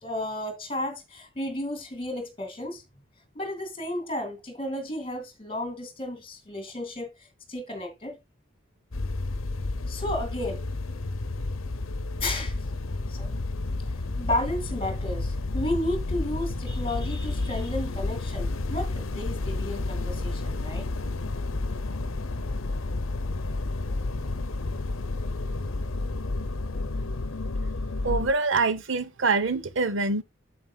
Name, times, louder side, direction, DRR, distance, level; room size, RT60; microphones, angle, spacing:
voice 1, 0.0-2.8 3.3-8.2 9.9-10.6 12.2-13.4 14.2-20.9, left 1 dB, 25° left, 2.3 m, -33 dB
sound 1, 8.9-28.3, left 2 dB, 90° left, 0.8 m, -31 dB
voice 2, 28.0-30.2, right 3 dB, 70° right, 0.9 m, -25 dB
9.4 x 7.8 x 2.3 m
head